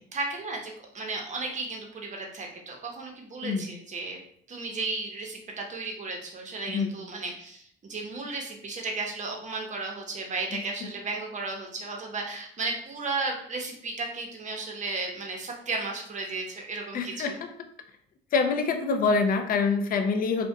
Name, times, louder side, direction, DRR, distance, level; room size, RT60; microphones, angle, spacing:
voice 1, 0.1-4.2 4.5-17.4, right 3 dB, 40° right, 1 dB, 0.7 m, -34 dB
voice 2, 16.9-17.5 18.3-20.5, left 4 dB, 50° left, 7 dB, 0.4 m, -25 dB
2.4 x 2.1 x 2.6 m, 0.63 s
cardioid pair, 90°, 20 cm